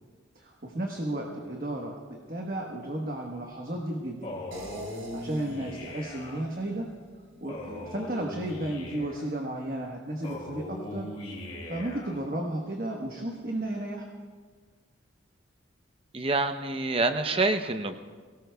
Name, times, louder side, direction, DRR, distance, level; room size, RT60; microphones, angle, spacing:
voice 1, 0.3-4.4 4.9-6.9 7.4-11.1 11.7-14.1, right 1 dB, 45° right, 0 dB, 1.2 m, -33 dB
Male speech man speaking, 4.2-6.4 7.5-9.3 10.2-12.2, left 1 dB, 30° left, 2.6 m, -40 dB
sound 1, 4.5-7.6, right 1 dB, 85° right, 3.6 m, -46 dB
voice 2, 16.1-17.9, right 3 dB, 30° right, 8 dB, 0.7 m, -26 dB
23.5 x 18.0 x 2.3 m, 1.5 s
head